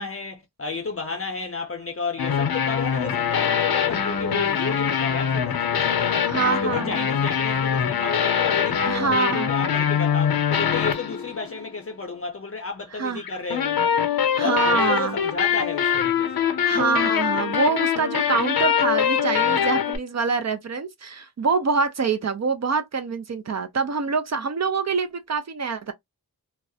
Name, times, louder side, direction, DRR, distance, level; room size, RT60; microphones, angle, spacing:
voice 1, 0.0-13.9 14.4-16.5, left 4 dB, 40° left, 0.5 m, -32 dB
sound 1, 2.2-11.7 13.2-20.0, left 8 dB, 75° left, 0.6 m, -23 dB
voice 2, 6.3-7.1 8.9-9.5 13.0-13.2 14.4-15.2 16.6-25.9, right 5 dB, 45° right, 0.4 m, -25 dB
2.3 x 2.0 x 2.6 m
wide cardioid pair, 75°, 37 cm